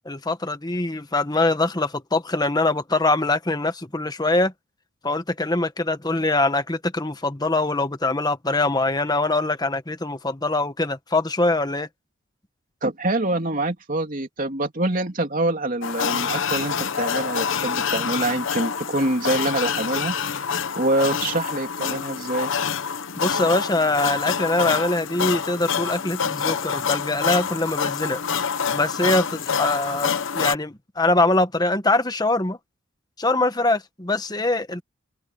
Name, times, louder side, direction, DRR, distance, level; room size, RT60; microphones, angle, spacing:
voice 1, 0.0-4.5 5.0-11.9 23.1-28.2 28.7-32.6 33.2-34.8, left 2 dB, 20° left, 1.3 m, -23 dB
voice 2, 12.8-20.2 20.8-22.5, right 2 dB, 40° right, 3.1 m, -25 dB
sound 1, 15.8-30.6, left 6 dB, 75° left, 0.9 m, -26 dB
open air
head